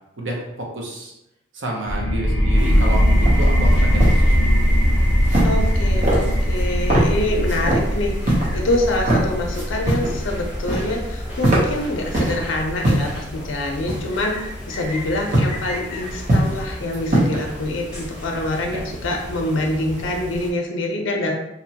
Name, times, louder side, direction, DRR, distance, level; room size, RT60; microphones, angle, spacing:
voice 1, 0.2-1.1 1.5-4.3 18.7-18.8, right 1 dB, 75° right, -1 dB, 0.6 m, -29 dB
sound 1, 1.9-13.3, equal, 10° left, 0.3 m, -20 dB
sound 2, 2.5-20.5, left 1 dB, 5° right, 0.9 m, -35 dB
sound 3, 3.3-3.4 3.8-4.2 5.3-5.7 6.0-6.6 6.9-7.1 7.5-7.8 8.2-8.5 8.9-9.2 9.5-10.2 10.4-11.0 11.3-12.4 12.8-13.2 13.9-14.3 15.3-15.6 16.0-16.6 16.9-17.4, right 1 dB, 40° right, 0.7 m, -21 dB
voice 2, 5.4-21.3, left 1 dB, 75° left, 1 dB, 0.4 m, -25 dB
2.9 x 2.1 x 2.8 m, 0.88 s
head